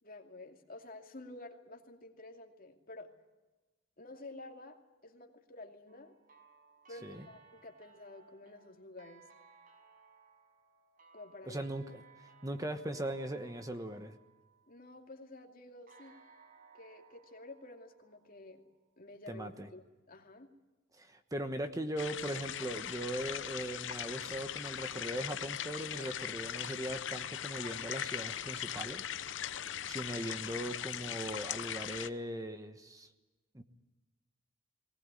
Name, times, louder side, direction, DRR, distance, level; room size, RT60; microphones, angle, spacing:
voice 1, 0.0-3.1 4.0-6.1 6.9-9.2 11.1-11.7 14.7-16.2 16.7-18.6 19.0-20.5, left 2 dB, 50° left, 3 dB, 2.6 m, -51 dB
sound 1, 5.9-15.1 15.9-18.8, right 5 dB, 45° right, 5.7 m, -62 dB
voice 2, 11.5-12.0 12.4-14.2 19.3-19.7 21.0-29.0 29.8-33.1 33.5-33.6, right 1 dB, 20° right, 8 dB, 1.1 m, -39 dB
sound 2, 22.0-32.1, left 9 dB, 65° left, 0.7 m, -40 dB
19.5 x 19.5 x 9.8 m, 1.1 s
head